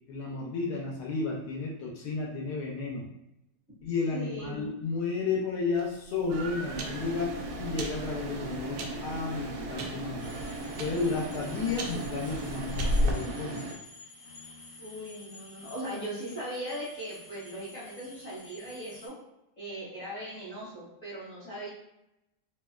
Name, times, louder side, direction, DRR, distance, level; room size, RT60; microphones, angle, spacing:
voice 1, 0.1-3.1 3.8-10.3 10.8-13.7, left 4 dB, 85° left, -2 dB, 1.2 m, -32 dB
voice 2, 4.1-4.7 14.8-19.1 19.6-21.7, right 1 dB, 35° left, -8 dB, 1.6 m, -39 dB
sound 1, 5.8-13.1, left 1 dB, 70° right, 0.9 m, -35 dB
sound 2, 6.3-13.7, right 2 dB, 90° right, 1.1 m, -38 dB
sound 3, 10.2-19.1, left 3 dB, 55° left, 1.2 m, -50 dB
3.2 x 2.8 x 2.3 m, 0.87 s
omnidirectional pair, 1.7 m